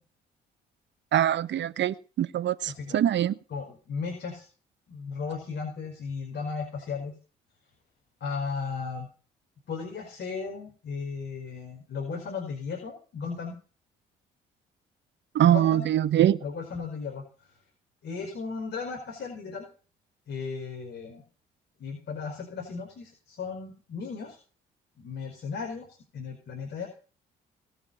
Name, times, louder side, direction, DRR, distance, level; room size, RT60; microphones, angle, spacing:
voice 1, 1.1-3.3 15.3-16.4, right 11 dB, 60° right, 1.1 m, -23 dB
voice 2, 2.6-3.0 3.5-4.5 4.9-7.1 8.2-9.1 9.7-13.6 15.4-15.9 16.4-17.2 18.0-19.7 20.3-21.2 21.8-24.4 25.0-26.9, left 5 dB, 55° left, 5.2 m, -35 dB
22.0 x 7.4 x 5.6 m
hypercardioid pair, 50°, 21 cm